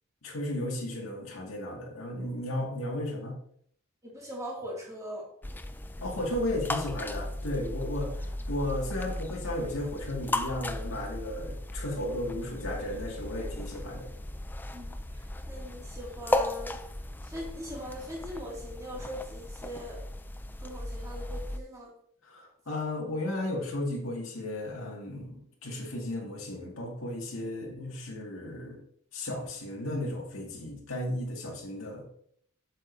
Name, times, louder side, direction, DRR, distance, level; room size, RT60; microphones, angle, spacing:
voice 1, 0.2-3.4 6.0-14.1 22.2-28.8 29.1-32.1, left 1 dB, 85° left, -1 dB, 2.0 m, -34 dB
voice 2, 4.0-5.3 14.7-16.8 17.2-20.0 20.6-21.9, equal, 15° right, -4 dB, 2.2 m, -41 dB
sound 1, 5.4-21.6, left 1 dB, 10° left, 0.4 m, -36 dB
7.6 x 7.3 x 2.7 m, 0.64 s
head